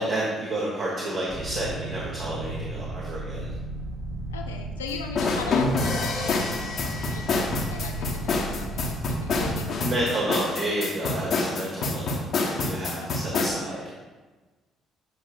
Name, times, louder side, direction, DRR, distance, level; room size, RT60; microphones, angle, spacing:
voice 1, 0.0-3.5 9.8-12.2 12.5-13.9, right 1 dB, 55° right, -5 dB, 1.5 m, -30 dB
sound 1, 1.3-10.9, right 2 dB, 15° right, 0.9 m, -35 dB
voice 2, 4.3-10.2 13.0-13.2, left 5 dB, 90° left, 3 dB, 0.4 m, -39 dB
sound 2, 5.1-13.5, left 3 dB, 55° left, 1.0 m, -27 dB
8.0 x 5.1 x 2.5 m, 1.3 s
hypercardioid pair, 50°, 0 cm